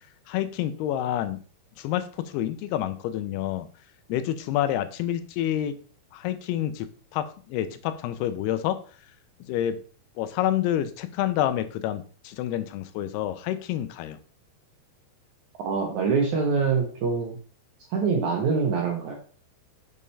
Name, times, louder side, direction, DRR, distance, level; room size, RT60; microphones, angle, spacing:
voice 1, 0.3-1.4 1.8-3.7 4.1-5.8 6.1-8.8 9.5-9.8 10.2-14.2, left 12 dB, 85° left, 11 dB, 2.6 m, -28 dB
voice 2, 15.6-17.4 17.9-19.1, right 5 dB, 75° right, 0 dB, 1.8 m, -24 dB
6.7 x 5.4 x 3.2 m, 0.41 s
omnidirectional pair, 4.6 m